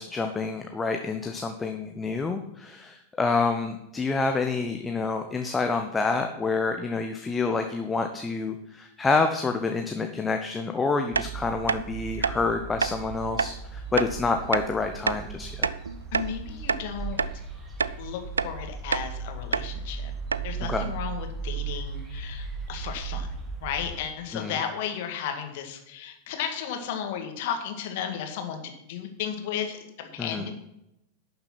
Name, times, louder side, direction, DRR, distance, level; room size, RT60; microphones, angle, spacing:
voice 1, 0.0-15.7 20.7-20.9 24.3-24.6 30.2-30.5, left 4 dB, 15° left, 5 dB, 0.8 m, -28 dB
sound 1, 11.1-24.0, right 5 dB, 20° right, 2.0 m, -37 dB
sound 2, 11.1-11.3 11.7-11.8 12.2-12.4 12.8-12.9 13.4-13.5 14.0-14.1 14.5-14.7 15.1-15.2 15.6-16.3 16.7-16.8 17.2-17.3 17.8-18.0 18.4-18.5 18.9-19.1 19.5-19.7 20.0-20.1 20.3-20.5, right 5 dB, 75° right, 0.4 m, -27 dB
voice 2, 16.1-17.2 18.0-20.1 20.4-23.3 23.6-28.6 28.9-30.5, left 8 dB, 50° left, 5 dB, 1.8 m, -34 dB
11.5 x 6.8 x 6.0 m, 0.84 s
figure-of-eight pair, 90°, 0 cm